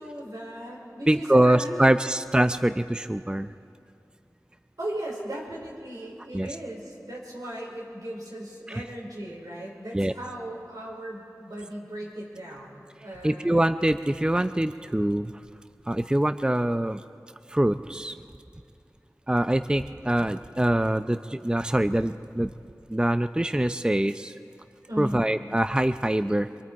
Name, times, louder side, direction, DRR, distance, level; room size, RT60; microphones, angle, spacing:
voice 1, 0.0-1.8 4.8-13.6 24.9-25.2, right 1 dB, 90° right, -3 dB, 5.0 m, -37 dB
voice 2, 1.1-3.5 6.3-6.5 8.7-8.8 9.9-10.1 13.2-15.3 15.9-17.0 17.5-18.2 19.3-22.5 22.9-24.3 25.0-26.5, right 1 dB, 15° right, 10 dB, 0.5 m, -24 dB
24.5 x 23.0 x 4.7 m, 2.4 s
wide cardioid pair, 40°, 6 cm